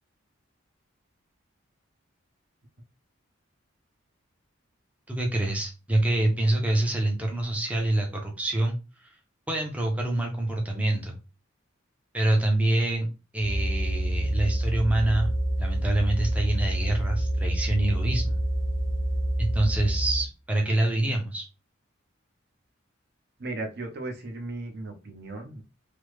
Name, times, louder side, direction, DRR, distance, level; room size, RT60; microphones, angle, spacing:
voice 1, 5.1-9.2 9.5-11.1 12.1-13.1 13.3-15.3 15.6-18.4 19.4-21.4, right 1 dB, 5° right, 0 dB, 0.5 m, -26 dB
sound 1, 13.4-20.3, right 1 dB, 60° left, 0.5 m, -27 dB
voice 2, 23.4-25.6, right 2 dB, 50° right, 4 dB, 0.7 m, -36 dB
3.2 x 2.0 x 3.1 m, 0.29 s
head